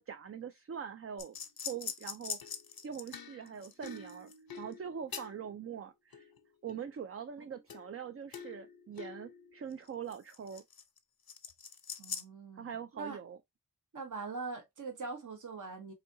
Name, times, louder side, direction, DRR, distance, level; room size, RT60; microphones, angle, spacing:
voice 1, 0.0-1.4 1.7-2.4 2.8-4.3 4.6-6.3 6.6-10.6 12.6-13.4, right 7 dB, 40° right, 0.4 m, -43 dB
sound 1, 1.2-5.6 6.1-7.0 7.7-8.0 8.3-11.0 11.3-12.2, left 6 dB, 80° left, 0.7 m, -44 dB
voice 2, 12.0-13.2 13.9-15.9, right 4 dB, 55° right, 0.9 m, -42 dB
4.1 x 2.7 x 2.6 m
wide cardioid pair, 60°, 35 cm